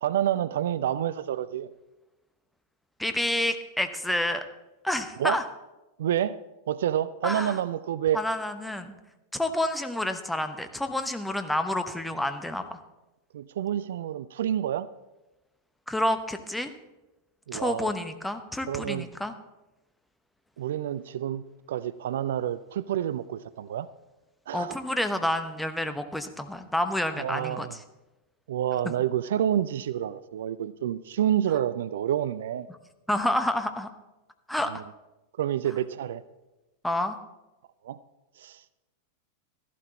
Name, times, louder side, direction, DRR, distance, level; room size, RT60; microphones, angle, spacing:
voice 1, 0.0-1.7 5.2-5.4 6.0-6.4 6.7-8.2 13.3-14.9 17.5-17.9 18.7-19.1 20.6-21.4 21.7-23.9 24.5-24.8 27.2-27.8 28.5-32.7 34.7-34.8 35.4-36.2 37.8-38.0 38.4-38.6, right 10 dB, 60° right, 16 dB, 0.4 m, -28 dB
voice 2, 3.0-4.4 4.8-5.4 7.2-7.6 8.1-8.9 9.3-12.8 15.9-16.7 17.5-19.3 24.5-27.8 33.1-33.9 34.5-34.7 36.8-37.2, left 1 dB, 5° left, 8 dB, 1.0 m, -29 dB
14.0 x 11.5 x 4.1 m, 1.0 s
figure-of-eight pair, 90°, 0 cm